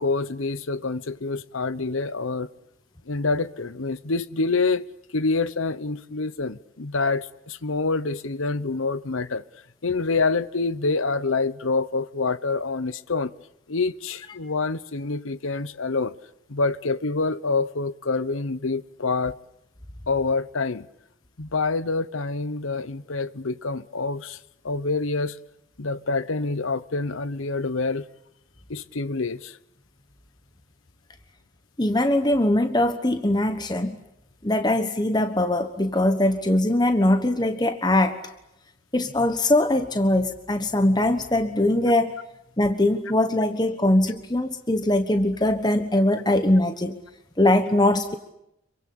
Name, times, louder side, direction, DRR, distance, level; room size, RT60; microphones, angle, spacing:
voice 1, 0.0-2.5 3.1-4.8 5.1-9.4 9.8-13.3 13.7-16.2 16.5-19.4 20.1-20.9 21.4-24.4 24.6-25.4 25.8-28.1 28.7-29.6, left 3 dB, 85° left, 1.0 m, -26 dB
voice 2, 31.8-34.0 34.4-38.2 38.9-42.1 42.6-47.0 47.4-48.1, left 1 dB, 20° left, 1.3 m, -21 dB
27.0 x 24.0 x 8.6 m
head